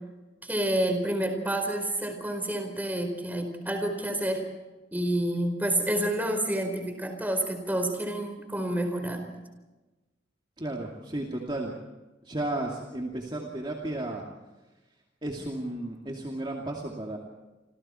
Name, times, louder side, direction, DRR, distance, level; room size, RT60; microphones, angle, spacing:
voice 1, 0.4-4.4 4.9-9.2, right 1 dB, 10° right, 5 dB, 4.5 m, -29 dB
voice 2, 10.6-11.7 12.2-14.2 15.2-17.2, right 1 dB, 25° right, -1 dB, 2.6 m, -33 dB
29.0 x 27.0 x 4.5 m, 1.1 s
head